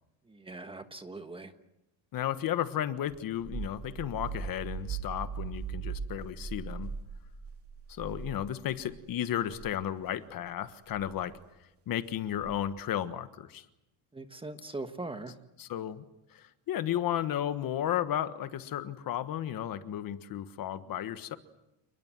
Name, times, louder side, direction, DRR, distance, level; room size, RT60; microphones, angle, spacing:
voice 1, 0.3-1.5 14.1-15.3, right 2 dB, 10° right, 8 dB, 1.3 m, -41 dB
voice 2, 2.1-6.9 7.9-11.4 11.9-13.6 15.6-16.0 16.3-21.4, left 11 dB, 50° left, 11 dB, 1.5 m, -33 dB
sound 1, 3.1-9.0 9.4-9.7 10.9-11.2 12.4-12.8, right 6 dB, 30° right, 2.9 m, -40 dB
29.0 x 21.0 x 7.6 m, 0.89 s
cardioid pair, 150°, 44 cm